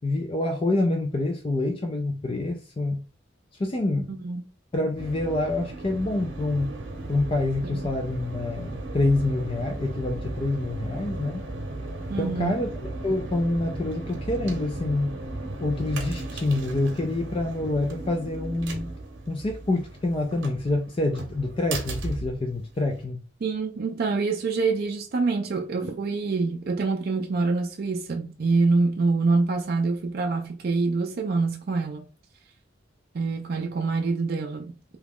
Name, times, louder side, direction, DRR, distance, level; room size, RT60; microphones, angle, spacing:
voice 1, 0.0-3.0 3.6-4.2 4.7-6.8 7.1-11.4 12.2-12.7 13.0-15.2 15.6-18.9 19.3-23.2, left 2 dB, 30° left, 0.4 m, -27 dB
sound 1, 5.0-23.0, right 2 dB, 85° right, 0.8 m, -36 dB
voice 2, 12.1-12.6 23.4-32.0 33.1-35.0, right 3 dB, 50° right, 0.4 m, -25 dB
2.9 x 2.3 x 3.5 m
head